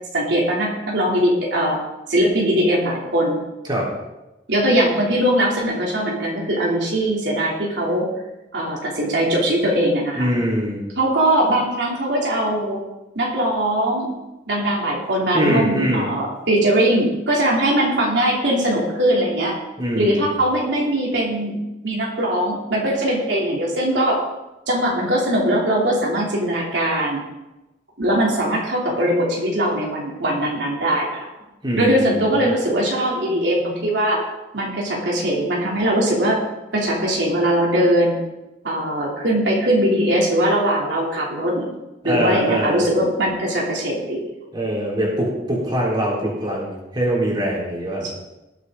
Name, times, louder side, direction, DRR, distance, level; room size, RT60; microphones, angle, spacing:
voice 1, 0.1-1.8 2.1-3.4 4.5-8.1 8.5-10.3 11.0-12.8 13.1-14.1 14.5-19.6 19.9-21.6 21.8-24.2 24.7-27.2 28.0-31.3 31.7-34.2 34.5-36.4 36.7-38.2 38.6-41.7 42.0-44.2 48.0-48.1, right 1 dB, 75° right, -3 dB, 3.1 m, -20 dB
voice 2, 10.2-10.9 15.3-16.1 19.8-20.3 31.6-32.4 42.0-42.8 44.5-48.1, equal, 25° right, -5 dB, 4.1 m, -23 dB
19.5 x 8.1 x 3.9 m, 1.0 s
head